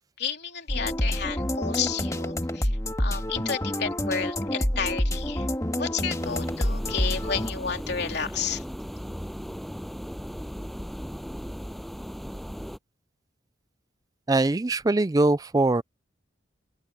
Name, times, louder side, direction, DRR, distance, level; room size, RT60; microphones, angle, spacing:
voice 1, 0.2-8.6, left 6 dB, 60° left, 3.5 m, -32 dB
sound 1, 0.7-7.5, left 1 dB, 15° left, 1.7 m, -28 dB
sound 2, 6.2-12.8, equal, ahead, 6.8 m, -37 dB
voice 2, 14.3-15.8, right 2 dB, 20° right, 0.4 m, -22 dB
open air
head